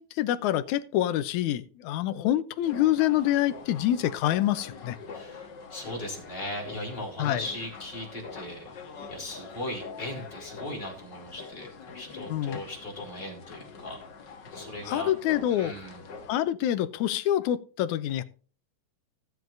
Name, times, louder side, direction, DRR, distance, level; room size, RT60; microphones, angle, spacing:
voice 1, 0.0-5.0 7.2-7.5 12.3-12.6 14.9-15.7 16.3-18.2, left 12 dB, 75° left, 13 dB, 2.0 m, -26 dB
sound 1, 2.6-16.4, left 5 dB, 50° left, 1.4 m, -44 dB
voice 2, 5.1-8.8 9.1-14.0 14.5-15.1 15.5-16.0, left 1 dB, 15° left, 0 dB, 3.6 m, -38 dB
17.0 x 7.8 x 2.6 m, 0.39 s
omnidirectional pair, 3.7 m